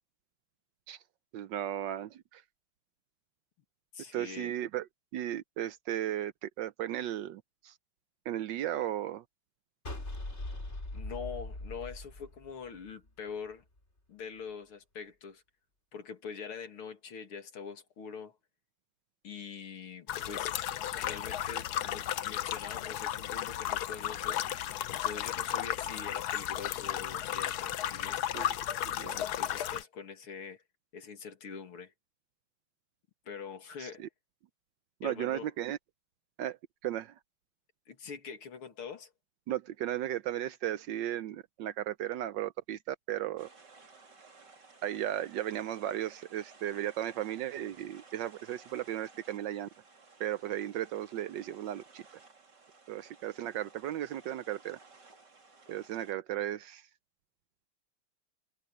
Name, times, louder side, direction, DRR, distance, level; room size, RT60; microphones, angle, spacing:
voice 1, 1.3-2.4 4.1-4.9 5.1-7.7 8.3-9.2 28.3-28.5 29.0-29.2 33.8-34.1 35.0-35.8 36.4-36.6 36.8-37.1 39.5-43.5 44.8-49.7 50.2-52.0 52.9-54.8 55.7-56.8, right 12 dB, 70° right, 1.2 m, -35 dB
voice 2, 3.9-4.5 10.9-13.6 14.1-15.4 15.9-18.4 19.2-20.5 20.9-28.2 28.9-30.6 30.9-31.9 33.3-34.1 35.0-35.5 37.9-39.1, left 6 dB, 90° left, 3.2 m, -44 dB
sound 1, 9.8-13.1, left 2 dB, 30° left, 4.6 m, -40 dB
sound 2, 20.1-29.8, left 11 dB, 65° left, 1.0 m, -34 dB
sound 3, 43.4-56.1, right 4 dB, 50° right, 3.7 m, -57 dB
omnidirectional pair, 2.3 m